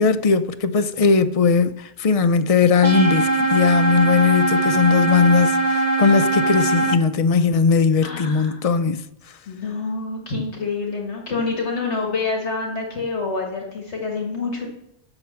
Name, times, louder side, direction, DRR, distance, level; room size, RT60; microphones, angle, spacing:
voice 1, 0.0-9.1, left 5 dB, 55° left, 0.4 m, -18 dB
sound 1, 2.8-7.0, right 2 dB, 40° right, 0.9 m, -20 dB
voice 2, 8.0-8.6 9.5-14.7, left 4 dB, 70° left, 1.7 m, -27 dB
7.7 x 6.0 x 7.3 m
omnidirectional pair, 1.2 m